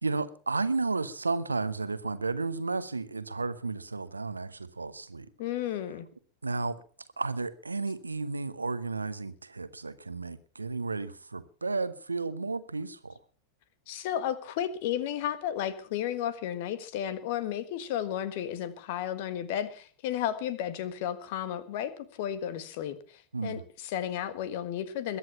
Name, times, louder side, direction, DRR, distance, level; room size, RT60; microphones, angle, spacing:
voice 1, 0.0-5.3 6.4-6.8 7.2-13.2 23.3-23.6, right 3 dB, 80° right, 1.0 m, -33 dB
voice 2, 5.4-6.1 13.9-25.2, left 10 dB, 50° left, 1.6 m, -33 dB
21.5 x 9.4 x 5.7 m
figure-of-eight pair, 90°, 0 cm